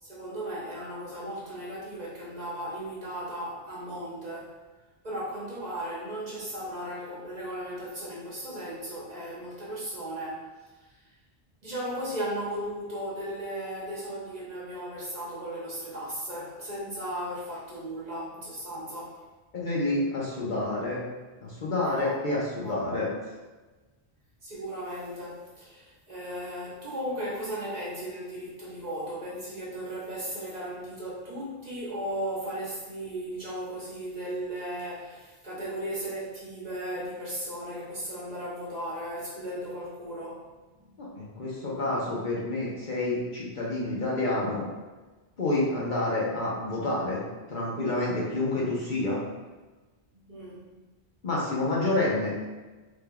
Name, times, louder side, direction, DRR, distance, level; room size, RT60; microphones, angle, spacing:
voice 1, 0.0-4.5 5.0-10.5 10.8-10.9 11.6-19.2 21.8-22.2 22.6-23.1 24.4-40.5 40.8-40.9 50.1-50.8, right 1 dB, 45° right, -7 dB, 0.9 m, -36 dB
voice 2, 19.5-21.0 21.4-23.1 41.0-44.7 45.4-47.2 47.5-49.2 51.2-52.4, left 2 dB, 50° left, -6 dB, 0.9 m, -28 dB
3.5 x 3.3 x 2.2 m, 1.2 s
omnidirectional pair, 1.1 m